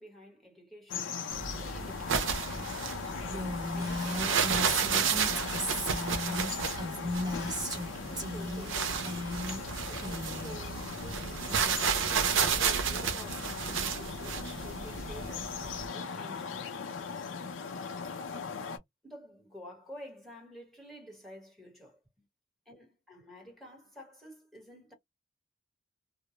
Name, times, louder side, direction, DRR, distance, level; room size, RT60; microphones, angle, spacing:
voice 1, 0.0-2.4 2.9-6.6 8.1-9.2 9.9-15.6 15.9-17.1 19.0-22.3 22.7-24.9, equal, ahead, 1.2 m, -51 dB
sound 1, 0.9-18.8, left 5 dB, 75° left, 0.5 m, -39 dB
sound 2, 1.3-15.9, right 6 dB, 80° right, 0.6 m, -32 dB
Female speech woman speaking, 3.3-7.9 8.2-8.7 9.0-9.6 9.9-10.6, left 1 dB, 20° right, 0.9 m, -36 dB
2.2 x 2.0 x 2.8 m
head